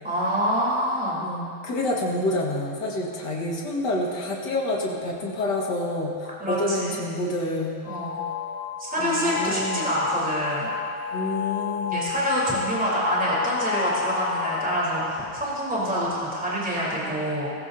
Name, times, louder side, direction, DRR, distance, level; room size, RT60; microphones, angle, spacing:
voice 1, 0.0-1.2 6.4-7.0 7.9-8.2 8.8-10.7 11.9-17.5, equal, 5° right, -7 dB, 3.5 m, -26 dB
voice 2, 1.2-7.8 9.0-9.8 11.1-12.1, left 1 dB, 60° left, -2 dB, 2.3 m, -28 dB
sound 1, 7.8-15.4, left 7 dB, 80° left, 1.9 m, -31 dB
19.0 x 15.0 x 2.7 m, 2.5 s
omnidirectional pair, 2.2 m